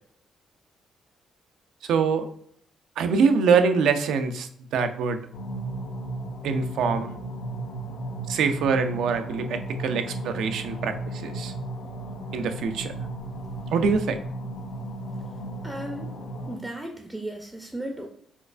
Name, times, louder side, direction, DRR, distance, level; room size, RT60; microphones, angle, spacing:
voice 1, 1.8-2.3 3.0-5.2 6.4-7.1 8.3-11.5 12.3-12.9 13.7-14.2, right 5 dB, 80° right, 8 dB, 0.4 m, -24 dB
sound 1, 5.3-16.6, right 1 dB, 75° left, 0.6 m, -35 dB
voice 2, 15.6-16.1 16.5-18.1, right 1 dB, 10° right, 3 dB, 0.4 m, -35 dB
4.3 x 2.3 x 2.4 m, 0.64 s
cardioid pair, 90°, 0 cm